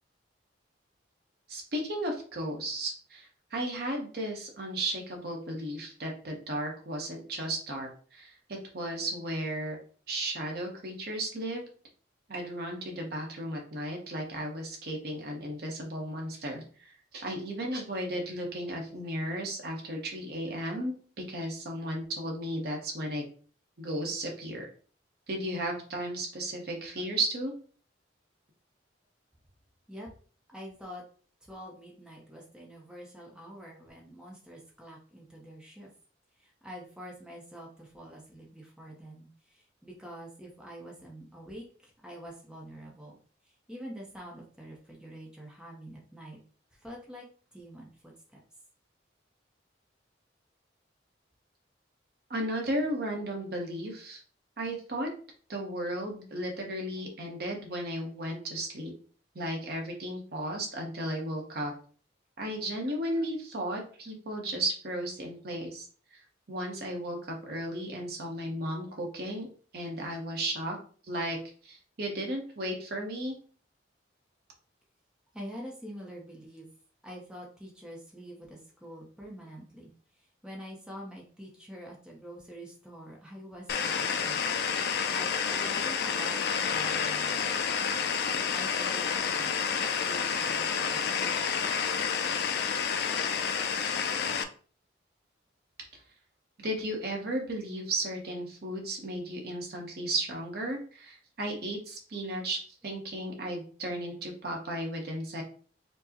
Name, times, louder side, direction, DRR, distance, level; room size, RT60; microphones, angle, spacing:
voice 1, 1.5-9.8 10.1-11.6 12.3-20.9 21.3-23.2 23.8-24.7 25.3-27.5 52.3-54.2 54.6-55.1 55.5-58.9 59.3-61.7 62.4-66.2 66.5-69.5 69.7-70.8 71.1-71.4 71.6-73.3 96.6-105.4, right 1 dB, 55° right, 1 dB, 0.8 m, -34 dB
voice 2, 30.5-31.0 31.4-35.9 36.4-43.2 43.4-46.4 46.7-47.3 47.5-48.4 75.3-76.7 77.0-84.6 85.1-87.9 88.5-91.5, equal, 5° right, -2 dB, 0.6 m, -46 dB
sound 1, 83.7-94.4, left 6 dB, 55° left, 0.3 m, -29 dB
4.5 x 2.1 x 2.8 m, 0.42 s
head